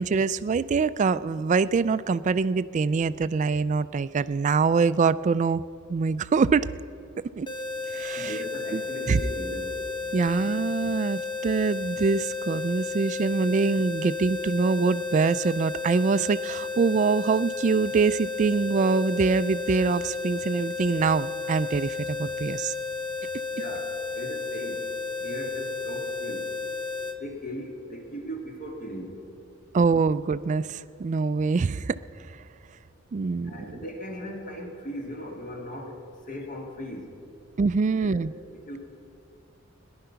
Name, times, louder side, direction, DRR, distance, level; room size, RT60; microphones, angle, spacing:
voice 1, 0.0-5.6 5.9-6.7 7.4-7.5 7.9-8.4 8.7-8.8 9.1-9.2 10.1-22.7 29.7-32.0 33.1-33.5 37.6-38.3, right 4 dB, 40° right, 15 dB, 0.3 m, -24 dB
sound 1, 7.5-27.2, left 4 dB, 25° left, 0.9 m, -33 dB
voice 2, 8.2-9.8 23.5-24.9 25.2-26.5 27.2-29.3 33.4-36.0 36.3-37.1 37.9-38.8, equal, 40° left, 1 dB, 2.0 m, -38 dB
17.5 x 11.5 x 5.7 m, 2.6 s
head